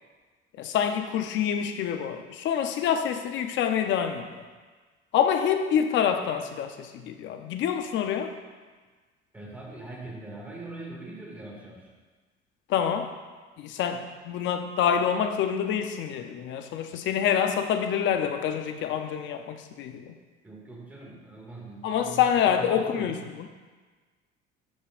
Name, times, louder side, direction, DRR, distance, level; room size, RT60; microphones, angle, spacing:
voice 1, 0.6-4.4 5.1-8.3 12.7-13.1 13.6-20.1 21.8-23.5, left 8 dB, 70° left, 7 dB, 0.7 m, -26 dB
voice 2, 9.3-11.9 20.4-23.2, right 2 dB, 10° right, -4 dB, 2.1 m, -41 dB
13.5 x 5.3 x 2.5 m, 1.4 s
cardioid pair, 115°, 20 cm